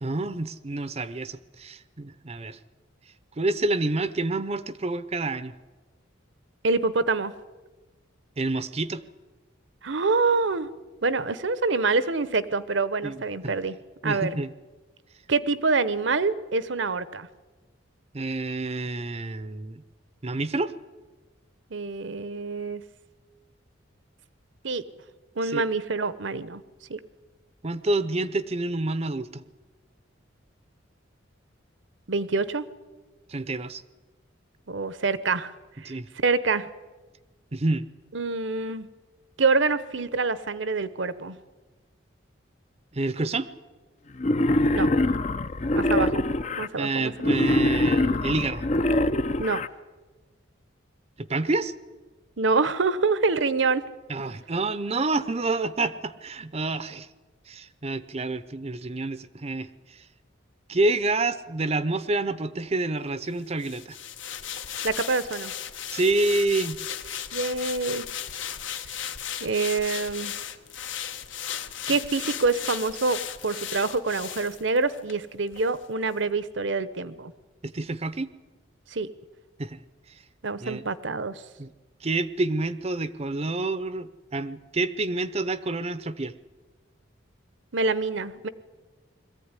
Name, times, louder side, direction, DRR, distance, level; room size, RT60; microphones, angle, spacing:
voice 1, 0.0-2.6 3.4-5.5 8.4-9.0 13.0-13.5 14.0-14.5 18.1-19.8 20.2-20.7 25.4-25.6 27.6-29.4 33.3-33.8 35.8-36.1 37.5-37.8 42.9-43.5 46.8-48.6 51.2-51.7 54.1-57.1 57.5-60.0 60.7-64.0 65.9-66.8 77.6-78.3 79.6-79.8 80.6-80.8 81.6-81.7 82.0-86.3, right 2 dB, 30° right, 14 dB, 0.7 m, -28 dB
voice 2, 6.6-7.3 9.8-10.7 11.0-13.8 14.0-14.4 15.3-17.3 21.7-22.8 24.6-24.8 25.4-26.6 26.9-27.0 32.1-32.7 34.7-35.5 35.8-36.7 38.1-38.9 39.4-41.4 44.7-44.9 45.7-46.2 46.6-47.3 49.4-49.6 52.4-53.8 64.8-65.5 67.3-68.0 69.4-70.3 71.9-77.3 78.9-79.1 80.4-81.4 87.7-88.5, right 4 dB, 65° right, 15 dB, 0.9 m, -26 dB
Wild animals, 44.2-46.7 47.2-49.7, left 1 dB, 35° left, 0.6 m, -23 dB
sound 1, 63.6-75.2 75.5-75.7, left 9 dB, 70° left, 1.2 m, -36 dB
22.0 x 14.5 x 9.7 m, 1.3 s
head